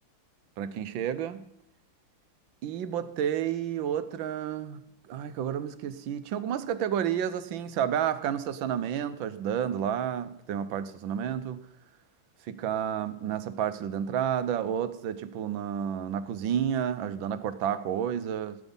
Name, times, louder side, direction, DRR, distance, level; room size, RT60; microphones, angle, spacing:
voice 1, 0.6-1.4 2.6-4.8 5.1-11.6 12.5-18.6, right 9 dB, 75° right, 1.5 m, -30 dB
17.0 x 9.4 x 5.4 m
omnidirectional pair, 2.2 m